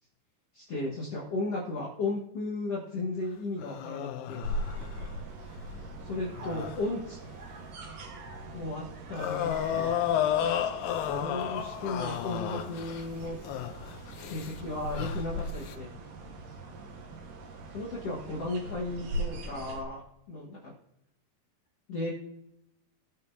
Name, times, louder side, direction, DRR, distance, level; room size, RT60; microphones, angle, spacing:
voice 1, 0.5-4.4 6.0-7.2 8.5-10.0 11.1-13.3 14.3-15.9 17.7-20.0 20.3-20.7 21.9-22.1, left 2 dB, 50° left, -5 dB, 2.0 m, -35 dB
sound 1, 3.6-4.9 6.3-6.8 9.1-13.1 13.4-14.6 14.9-15.7, left 10 dB, 80° left, 2.1 m, -32 dB
sound 2, 4.4-19.8, right 1 dB, 65° right, 2.7 m, -41 dB
voice 2, 4.6-5.1 5.4-6.8, equal, 5° left, -5 dB, 2.0 m, -54 dB
18.5 x 6.5 x 2.7 m, 0.80 s
omnidirectional pair, 4.4 m